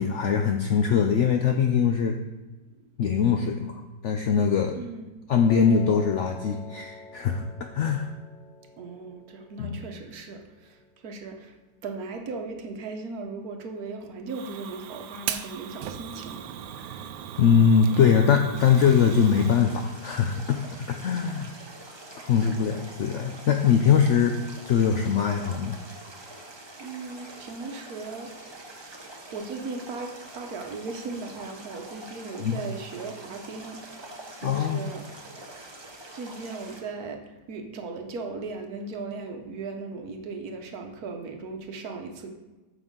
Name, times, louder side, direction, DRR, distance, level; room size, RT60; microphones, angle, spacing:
voice 1, 0.0-2.2 3.0-4.8 5.3-7.5 7.7-8.1 9.6-9.8 16.9-17.0 17.4-21.5 22.2-24.4 24.7-25.8 32.4-32.6 34.4-34.8, left 7 dB, 70° left, 5 dB, 0.7 m, -22 dB
voice 2, 4.7-5.1 8.8-10.8 11.0-11.5 11.8-16.4 21.1-21.4 22.3-22.5 26.8-28.3 28.6-28.8 29.3-33.8 34.4-35.1 36.1-37.2 37.5-42.3, right 3 dB, 65° right, 3 dB, 1.3 m, -37 dB
Piano, 5.5-11.6, left 2 dB, 85° left, 1.6 m, -47 dB
Fire, 14.3-19.6, right 9 dB, 80° right, 1.2 m, -38 dB
sound 1, 18.5-36.8, right 2 dB, 25° right, 0.7 m, -45 dB
9.2 x 6.2 x 3.7 m, 1.2 s
omnidirectional pair, 1.8 m